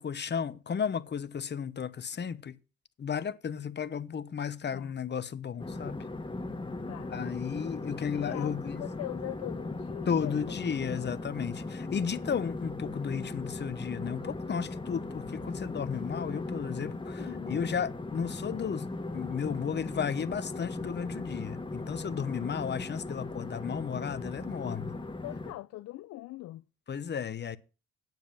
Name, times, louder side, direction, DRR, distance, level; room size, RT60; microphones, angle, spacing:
voice 1, 0.0-2.5 3.0-6.0 7.1-8.8 10.1-18.9 19.1-24.9 26.9-27.6, left 7 dB, 35° left, 0.9 m, -34 dB
sound 1, 5.6-25.5, left 2 dB, 15° left, 1.4 m, -38 dB
voice 2, 6.8-7.2 8.1-10.4 17.2-17.7 25.2-26.6, left 16 dB, 60° left, 0.5 m, -42 dB
9.3 x 7.4 x 6.0 m
hypercardioid pair, 55°, 30 cm